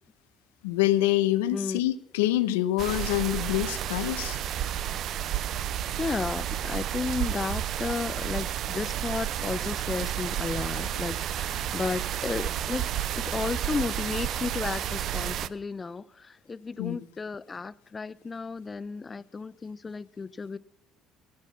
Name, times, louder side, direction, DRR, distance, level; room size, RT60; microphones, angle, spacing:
voice 1, 0.6-4.4 16.8-17.0, left 15 dB, 85° left, 0.5 m, -26 dB
sound 1, 2.8-15.5, right 11 dB, 60° right, 0.5 m, -31 dB
voice 2, 6.0-12.9 13.2-20.6, left 4 dB, 30° left, 0.4 m, -33 dB
16.5 x 6.2 x 7.2 m
hypercardioid pair, 60°, 0 cm